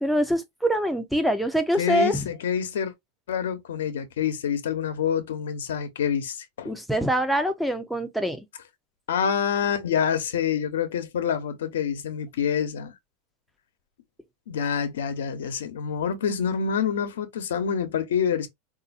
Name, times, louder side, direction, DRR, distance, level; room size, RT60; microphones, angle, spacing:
voice 1, 0.0-2.3 6.7-8.4, equal, ahead, 0.7 m, -24 dB
voice 2, 1.8-2.9 3.3-6.8 9.1-12.9 14.5-18.5, left 7 dB, 90° left, 0.9 m, -27 dB
3.8 x 2.6 x 2.5 m
supercardioid pair, 130°, 0 cm